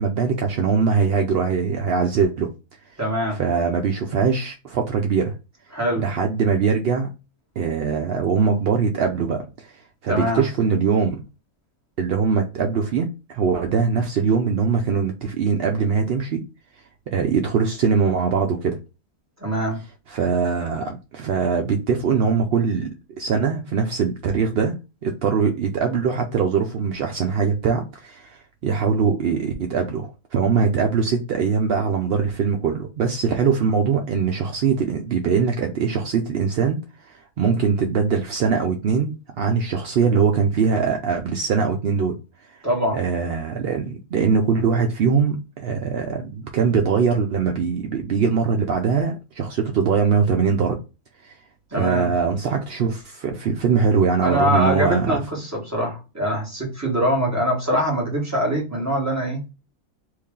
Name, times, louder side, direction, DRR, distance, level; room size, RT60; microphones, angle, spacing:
voice 1, 0.0-2.5 3.3-5.3 6.0-7.1 7.6-9.7 10.0-11.2 12.0-16.4 17.1-18.8 20.1-22.9 23.2-24.7 25.0-42.2 42.9-50.8 51.2-51.3 51.8-55.2, right 5 dB, 70° right, 0.5 m, -22 dB
voice 2, 3.0-3.4 5.7-6.0 10.1-10.4 19.4-19.8 42.6-43.0 51.7-52.1 54.2-59.4, equal, 10° right, 1.4 m, -23 dB
3.2 x 2.6 x 3.6 m
omnidirectional pair, 1.6 m